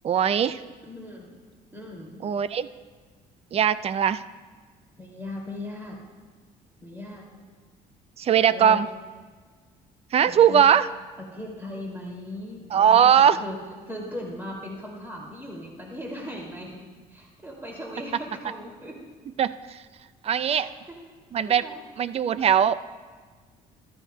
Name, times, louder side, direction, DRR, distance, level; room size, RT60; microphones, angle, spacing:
voice 1, 0.0-0.6 2.2-2.7 3.5-4.2 8.2-8.9 10.1-10.9 12.7-13.4 19.4-19.8 20.2-20.7 21.3-21.6 22.0-22.8, right 8 dB, 35° right, 15 dB, 0.4 m, -20 dB
voice 2, 0.8-1.3 1.7-2.2 5.0-6.0 6.8-7.3 8.5-8.8 10.2-10.6 11.3-13.6 13.9-19.0 20.5-21.0 21.4-21.8, left 1 dB, 15° right, -2 dB, 2.4 m, -38 dB
14.0 x 13.5 x 2.2 m, 1.5 s
cardioid pair, 110°, 17 cm